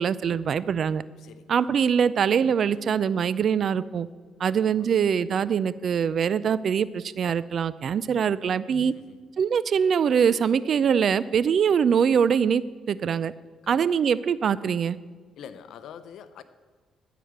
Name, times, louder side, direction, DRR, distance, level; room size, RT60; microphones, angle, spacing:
voice 1, 0.0-1.0 1.5-4.1 4.4-8.9 9.4-13.3 13.7-15.0, right 7 dB, 55° right, 17 dB, 0.4 m, -23 dB
voice 2, 1.2-1.6 4.5-4.9 8.9-9.2 10.0-10.2 13.6-13.9 15.4-16.4, left 8 dB, 75° left, 12 dB, 0.7 m, -45 dB
13.5 x 5.0 x 7.9 m, 1.4 s
cardioid pair, 90°, 0 cm